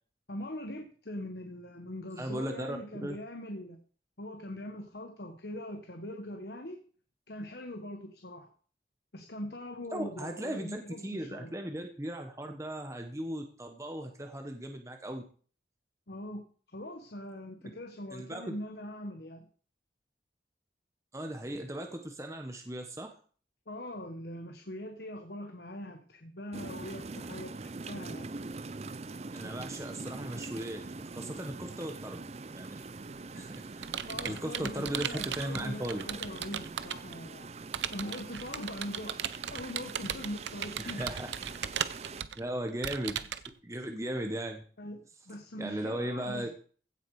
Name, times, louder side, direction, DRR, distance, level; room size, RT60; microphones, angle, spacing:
voice 1, 0.3-3.8 4.2-6.8 7.3-8.5 9.1-11.5 16.1-19.5 23.7-28.3 34.1-37.5 37.9-39.2 39.5-41.0 44.8-46.5, left 1 dB, 65° left, 5 dB, 1.3 m, -42 dB
voice 2, 2.2-3.2 9.9-15.2 18.1-18.5 21.1-23.2 29.3-32.2 32.5-32.8 33.3-33.9 34.2-36.1 40.8-41.6 42.4-43.3 43.6-44.6 45.5-46.5, right 1 dB, 15° right, 4 dB, 1.1 m, -37 dB
sound 1, 26.5-42.2, right 3 dB, 35° right, 0.5 m, -43 dB
Computer keyboard, 33.1-37.1 37.7-43.5, right 9 dB, 80° right, 0.7 m, -37 dB
16.0 x 7.6 x 4.8 m, 0.43 s
head